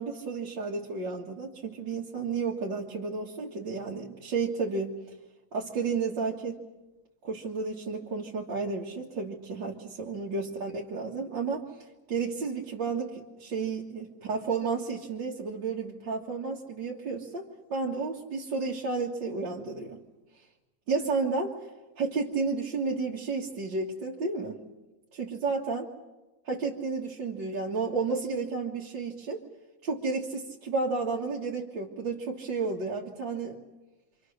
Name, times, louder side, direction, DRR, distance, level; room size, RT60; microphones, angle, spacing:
voice 1, 0.0-5.0 5.5-6.6 7.2-11.6 12.1-17.4 17.7-20.0 20.9-21.5 22.0-24.6 25.1-25.9 26.5-29.4 29.8-33.6, right 4 dB, 75° right, -3 dB, 2.5 m, -32 dB
28.0 x 26.0 x 6.5 m, 1.1 s
omnidirectional pair, 2.0 m